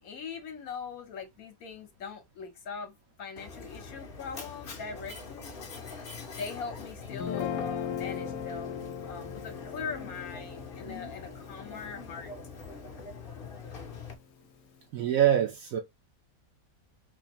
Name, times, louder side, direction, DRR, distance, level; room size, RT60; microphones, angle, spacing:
voice 1, 0.0-5.5 6.3-12.3, left 5 dB, 65° left, 1.2 m, -41 dB
Mechanisms, 3.4-14.1, left 4 dB, 45° left, 0.8 m, -43 dB
Guitar, 7.1-13.4, left 8 dB, 80° left, 1.1 m, -39 dB
voice 2, 14.9-15.8, right 10 dB, 65° right, 1.0 m, -24 dB
4.0 x 2.6 x 2.9 m
omnidirectional pair, 1.8 m